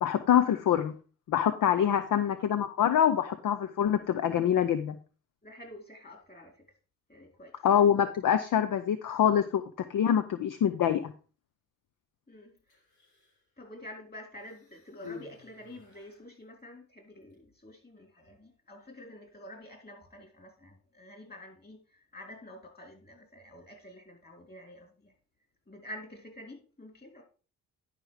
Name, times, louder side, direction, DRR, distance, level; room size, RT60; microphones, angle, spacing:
voice 1, 0.0-0.9 1.3-5.0 7.6-9.6 9.9-11.1, left 9 dB, 50° left, 0.8 m, -25 dB
voice 2, 5.4-6.6 7.1-7.6 12.3-12.5 13.6-25.1 25.7-27.2, left 1 dB, 25° left, 4.4 m, -48 dB
Human voice, 12.6-13.5 14.4-16.3 17.2-17.4, left 6 dB, 70° left, 4.3 m, -50 dB
11.0 x 5.1 x 4.9 m
hypercardioid pair, 55°, 40 cm